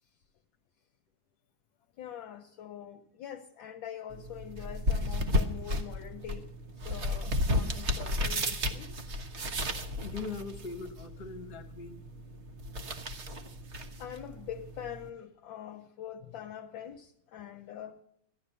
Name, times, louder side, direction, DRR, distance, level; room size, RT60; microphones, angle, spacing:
voice 1, 2.0-6.5 6.8-8.9 14.0-18.0, left 10 dB, 70° left, 1.5 m, -44 dB
sound 1, 4.1-15.1, left 1 dB, 40° right, 1.2 m, -34 dB
voice 2, 10.0-12.0 17.4-17.5, left 4 dB, 50° left, 1.6 m, -41 dB
14.5 x 11.5 x 6.7 m
omnidirectional pair, 2.3 m